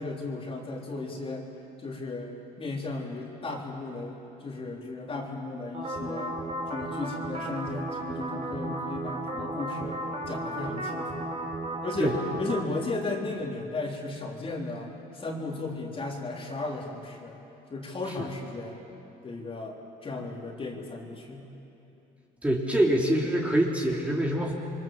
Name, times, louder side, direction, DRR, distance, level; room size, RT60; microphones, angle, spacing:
voice 1, 0.0-1.5 1.8-2.3 2.6-6.4 6.7-10.0 10.3-11.3 11.8-17.4 17.7-18.8 19.2-21.5, left 3 dB, 35° left, -1 dB, 3.8 m, -35 dB
sound 1, 5.7-12.6, right 1 dB, 35° right, 3.6 m, -34 dB
voice 2, 22.4-24.5, right 1 dB, 10° right, -2 dB, 3.1 m, -25 dB
28.5 x 23.0 x 7.6 m, 2.8 s
cardioid pair, 110°, 17 cm